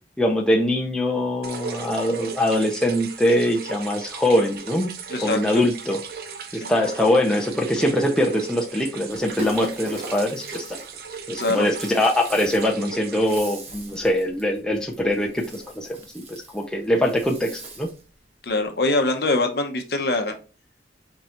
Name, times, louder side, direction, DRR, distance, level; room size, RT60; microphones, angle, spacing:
voice 1, 0.2-4.9 5.2-6.0 6.5-10.6 11.3-15.9 16.3-17.9, left 1 dB, 5° left, -1 dB, 0.7 m, -22 dB
sound 1, 1.4-13.4, right 6 dB, 60° right, 0.6 m, -37 dB
voice 2, 5.1-5.6 6.6-6.7 11.4-11.7 18.4-20.3, left 2 dB, 60° left, 5 dB, 0.9 m, -23 dB
Rattle (instrument), 9.1-18.1, right 2 dB, 35° right, 1.0 m, -41 dB
4.6 x 3.8 x 2.9 m, 0.33 s
head